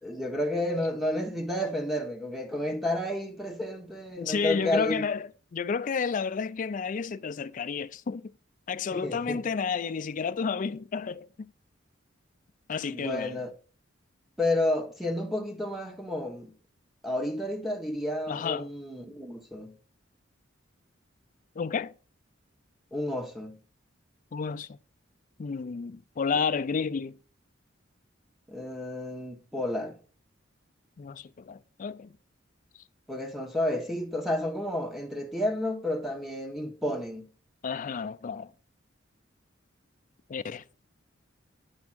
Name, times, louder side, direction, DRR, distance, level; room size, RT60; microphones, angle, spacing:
voice 1, 0.0-5.1 8.9-9.4 12.9-13.5 14.4-16.5 17.0-19.7 22.9-23.6 28.5-30.0 33.1-37.2, left 1 dB, ahead, 1.2 m, -31 dB
voice 2, 4.2-8.3 8.7-11.3 12.7-13.4 18.3-18.7 21.6-21.9 24.3-24.8 25.4-27.2 31.0-32.1 37.6-38.5 40.3-40.8, left 5 dB, 40° left, 0.4 m, -31 dB
9.7 x 3.5 x 6.0 m
head